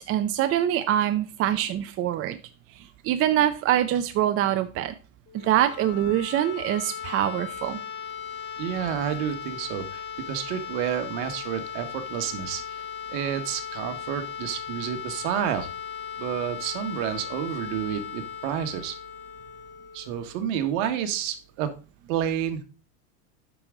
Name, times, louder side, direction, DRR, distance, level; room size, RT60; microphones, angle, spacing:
voice 1, 0.0-2.4 2.7-4.9 5.3-7.8, right 11 dB, 30° right, 9 dB, 0.6 m, -24 dB
sound 1, 5.3-21.0, left 8 dB, 25° left, 1.3 m, -38 dB
voice 2, 8.6-12.8 13.1-15.7 16.2-18.9 19.9-21.7 22.1-22.6, right 10 dB, 60° right, 8 dB, 1.6 m, -30 dB
8.9 x 6.2 x 3.8 m, 0.33 s
supercardioid pair, 115°, 42 cm